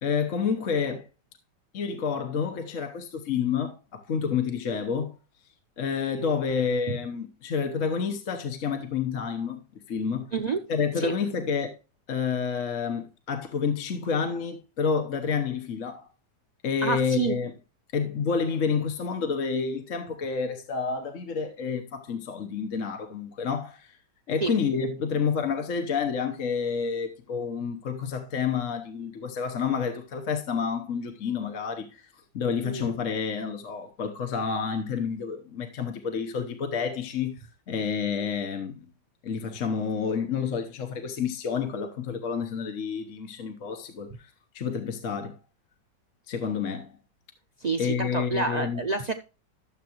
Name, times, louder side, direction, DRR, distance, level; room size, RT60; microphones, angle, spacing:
voice 1, 0.0-1.0 1.7-5.1 5.8-9.6 9.9-10.3 10.7-11.8 12.1-16.1 16.6-17.5 17.9-24.0 24.3-32.0 32.3-37.4 37.7-38.9 39.2-45.4 46.3-46.9 47.8-48.8, left 6 dB, 50° left, 1.3 m, -29 dB
voice 2, 16.8-17.4 24.4-24.5 32.6-33.0 47.6-49.1, right 4 dB, 60° right, 0.4 m, -28 dB
13.0 x 7.4 x 3.0 m
omnidirectional pair, 1.9 m